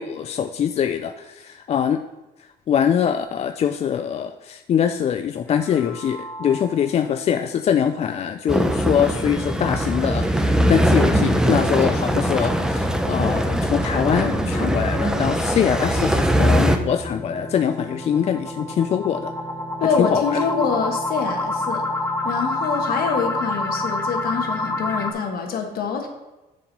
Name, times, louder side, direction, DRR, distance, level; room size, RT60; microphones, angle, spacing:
voice 1, 0.0-2.0 2.7-19.3 19.8-20.4, left 8 dB, 40° left, 8 dB, 0.4 m, -23 dB
sound 1, 5.5-7.0 7.4-7.5 7.9-8.0 8.4-8.5 13.3-25.1, left 2 dB, 15° left, 1.0 m, -29 dB
sound 2, 8.5-16.8, equal, 5° right, 0.6 m, -21 dB
voice 2, 19.8-21.8 22.2-26.1, left 6 dB, 65° left, 4 dB, 1.3 m, -25 dB
6.8 x 5.0 x 5.4 m, 1.1 s
cardioid pair, 110°, 17 cm